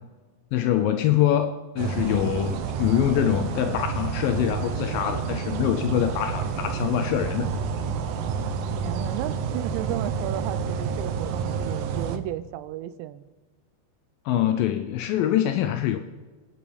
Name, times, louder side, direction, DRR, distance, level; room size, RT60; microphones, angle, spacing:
voice 1, 0.5-7.5 14.3-16.0, left 11 dB, 85° left, 8 dB, 2.0 m, -24 dB
sound 1, 1.8-12.2, right 6 dB, 75° right, 1.9 m, -29 dB
voice 2, 8.8-13.3, right 13 dB, 90° right, 14 dB, 2.9 m, -34 dB
28.5 x 9.6 x 5.2 m, 1.3 s
omnidirectional pair, 5.0 m